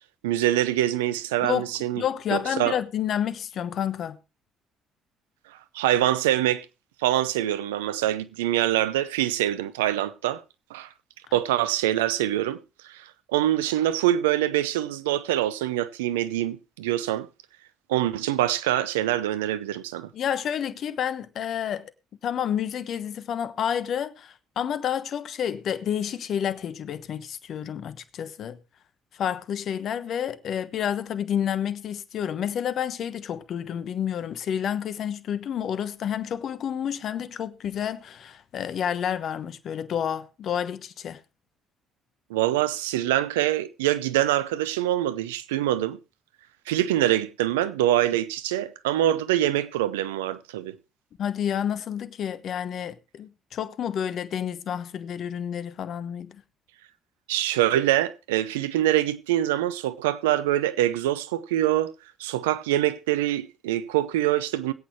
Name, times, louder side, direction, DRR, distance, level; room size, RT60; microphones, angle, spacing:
voice 1, 0.2-2.0 2.3-2.8 5.7-6.7 7.0-10.4 10.7-10.9 11.3-17.3 17.9-20.1 42.3-46.0 46.7-50.8 57.3-61.9 62.2-64.7, right 13 dB, 85° right, 0.6 m, -24 dB
voice 2, 1.9-4.2 20.1-21.9 22.2-28.6 29.1-41.2 51.2-56.4, left 9 dB, 60° left, 1.0 m, -29 dB
21.0 x 8.5 x 3.1 m
hypercardioid pair, 50°, 0 cm